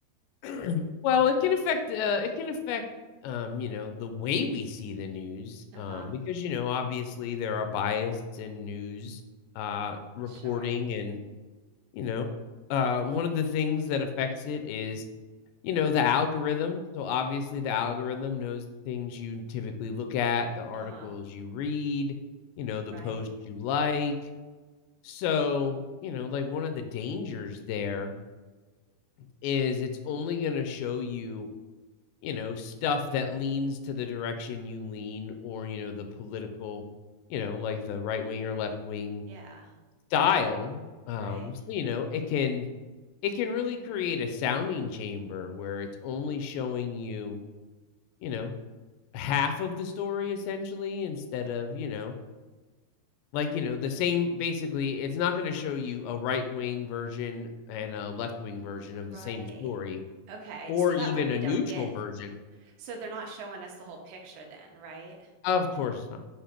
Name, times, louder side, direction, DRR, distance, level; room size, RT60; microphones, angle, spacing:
voice 1, 0.4-2.8 3.2-9.2 9.6-11.2 11.9-12.3 12.7-15.0 15.6-22.2 22.6-24.2 25.0-28.1 29.4-31.5 32.2-36.8 37.3-39.2 40.1-42.7 43.2-47.4 48.2-48.5 49.1-52.1 53.3-60.0 60.7-62.4 65.4-66.2, left 6 dB, 85° left, 7 dB, 2.7 m, -30 dB
voice 2, 5.7-6.1 10.3-10.7 20.7-21.1 22.9-23.3 39.3-39.7 41.1-41.5 55.8-55.9 58.9-59.8 60.3-61.9 62.5-65.3, right 3 dB, 80° right, 1 dB, 2.9 m, -43 dB
7.4 x 2.5 x 5.0 m, 1.3 s
omnidirectional pair, 5.0 m